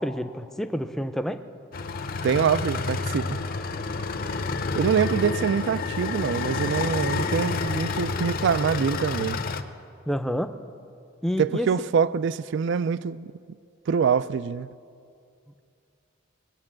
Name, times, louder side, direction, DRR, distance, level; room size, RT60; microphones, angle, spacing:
voice 1, 0.0-1.4 10.1-10.5 11.2-11.7, equal, ahead, 0.5 m, -28 dB
sound 1, 1.7-9.6, left 4 dB, 50° left, 0.7 m, -29 dB
voice 2, 2.2-3.3 4.8-9.4 11.4-13.3 13.9-14.7, right 6 dB, 60° right, 0.3 m, -24 dB
20.5 x 8.8 x 7.4 m
head